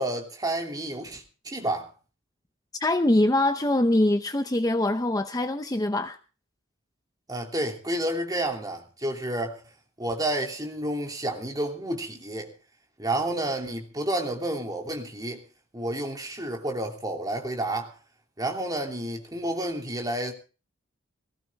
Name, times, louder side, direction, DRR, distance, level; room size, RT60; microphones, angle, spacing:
voice 1, 0.0-1.9 7.3-9.6 10.0-12.5 13.0-15.4 15.7-17.9 18.4-20.3, right 1 dB, 20° right, 3.0 m, -30 dB
voice 2, 2.8-6.2, left 1 dB, 20° left, 0.7 m, -23 dB
19.0 x 16.0 x 3.6 m
head